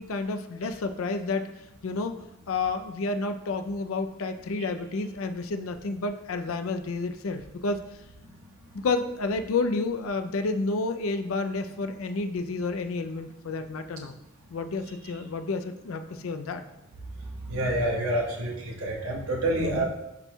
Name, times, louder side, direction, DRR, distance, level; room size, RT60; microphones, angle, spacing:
voice 1, 0.0-1.5 1.8-2.2 2.5-7.8 8.7-14.2 14.5-16.6 19.6-19.9, left 3 dB, 85° left, 7 dB, 0.4 m, -30 dB
voice 2, 17.5-19.9, right 1 dB, 90° right, -1 dB, 1.1 m, -27 dB
11.0 x 4.5 x 2.2 m, 0.91 s
head